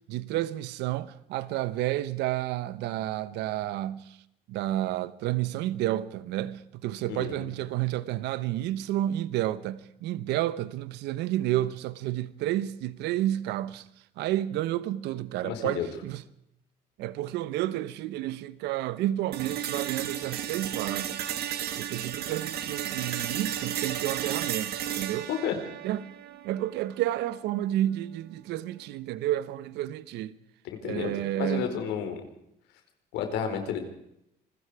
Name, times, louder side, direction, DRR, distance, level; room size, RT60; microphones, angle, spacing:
voice 1, 0.0-4.2 4.5-13.8 14.2-16.2 17.0-21.2 21.7-25.3 25.8-26.1 26.4-30.3 30.8-31.7, right 14 dB, 90° right, 1.1 m, -30 dB
voice 2, 7.1-7.5 15.4-15.9 25.3-25.6 30.6-32.2 33.1-33.8, left 8 dB, 90° left, 4.5 m, -31 dB
sound 1, 19.3-27.3, right 10 dB, 70° right, 2.3 m, -34 dB
27.5 x 21.0 x 4.9 m
cardioid pair, 110°, 17 cm